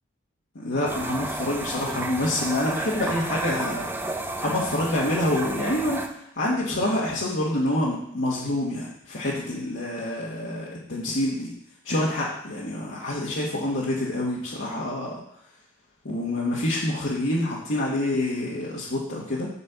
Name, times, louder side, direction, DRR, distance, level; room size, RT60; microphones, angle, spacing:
voice 1, 0.5-4.1 4.4-11.5 11.8-15.2 16.0-19.5, left 1 dB, 65° left, -6 dB, 1.6 m, -27 dB
sound 1, 0.9-6.1, right 2 dB, 10° right, 0.6 m, -32 dB
8.4 x 4.3 x 6.9 m, 0.70 s
head